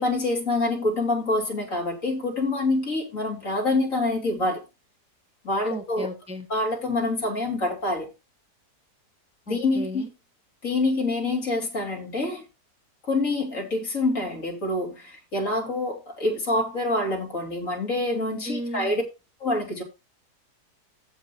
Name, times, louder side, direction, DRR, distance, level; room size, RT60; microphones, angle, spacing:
voice 1, 0.0-4.6 5.4-6.1 6.5-8.1 9.5-10.0 10.6-12.4 13.1-19.0 19.4-19.8, left 2 dB, 50° left, 3.5 m, -26 dB
voice 2, 5.6-6.5 9.5-10.1 18.4-18.9, equal, 5° right, 1.5 m, -34 dB
15.5 x 5.5 x 2.8 m
omnidirectional pair, 1.7 m